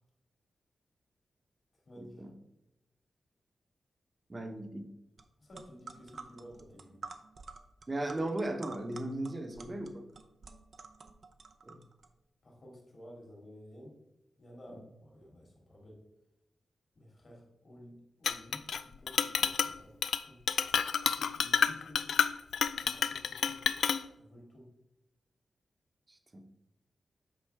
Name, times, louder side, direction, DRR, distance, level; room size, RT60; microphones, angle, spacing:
voice 1, 2.0-2.3 4.3-4.9 7.9-10.1 11.6-11.8 14.7-14.8 26.1-26.4, right 1 dB, 30° right, 6 dB, 1.0 m, -37 dB
sound 1, 5.2-5.3 5.5-12.1, right 4 dB, 55° right, 0.7 m, -49 dB
voice 2, 5.4-7.0 12.4-14.0 14.4-16.0 16.9-20.4 21.1-22.2 22.8-23.6 24.2-24.7, equal, 50° left, -1 dB, 2.7 m, -53 dB
Chink clink, 18.2-18.8 19.1-19.7 20.0-20.2 20.5-24.0, left 7 dB, 90° left, 0.3 m, -29 dB
8.5 x 5.3 x 3.6 m, 0.88 s
wide cardioid pair, 90°, 0 cm